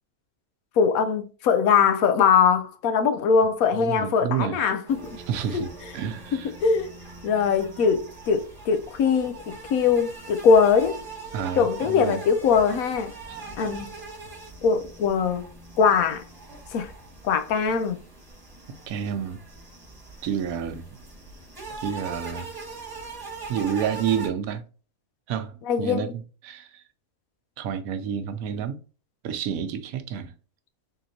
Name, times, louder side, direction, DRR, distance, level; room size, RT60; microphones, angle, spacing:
voice 1, 0.8-5.2 5.5-5.7 6.3-6.9 7.2-11.0 11.6-13.1 13.6-13.9 14.6-15.4 15.8-16.2 16.7-16.9 17.2-18.0 25.7-26.1, left 6 dB, 85° left, 1.1 m, -21 dB
voice 2, 3.8-4.6 5.3-6.5 11.3-12.2 18.9-19.4 20.2-20.9 21.8-22.5 23.5-24.6 25.3-26.1 26.4-26.8 27.6-28.8 29.2-30.3, right 8 dB, 85° right, 1.1 m, -29 dB
sound 1, 4.9-24.3, right 3 dB, 15° right, 1.1 m, -41 dB
3.8 x 3.5 x 2.8 m
omnidirectional pair, 1.4 m